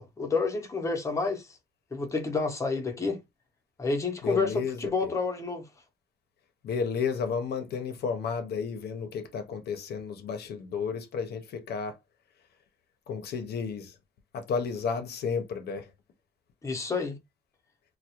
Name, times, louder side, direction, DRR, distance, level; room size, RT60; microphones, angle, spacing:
voice 1, 0.0-1.5 1.9-3.2 3.8-5.7 16.6-17.2, left 4 dB, 20° left, 0.6 m, -29 dB
voice 2, 4.2-5.1 6.6-12.0 13.1-14.0 14.3-15.9, left 6 dB, 75° left, 0.5 m, -32 dB
2.2 x 2.0 x 2.7 m
cardioid pair, 115°, 17 cm